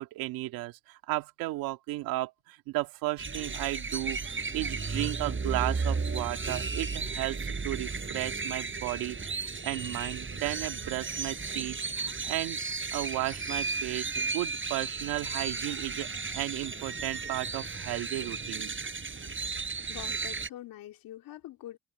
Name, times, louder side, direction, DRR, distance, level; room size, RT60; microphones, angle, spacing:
voice 1, 0.0-12.6 12.9-16.1 16.3-18.8, right 18 dB, 85° right, 2.2 m, -34 dB
sound 1, 3.2-20.5, right 4 dB, 35° right, 5.2 m, -34 dB
voice 2, 19.9-21.8, left 13 dB, 75° left, 2.9 m, -44 dB
hypercardioid pair, 50°, 34 cm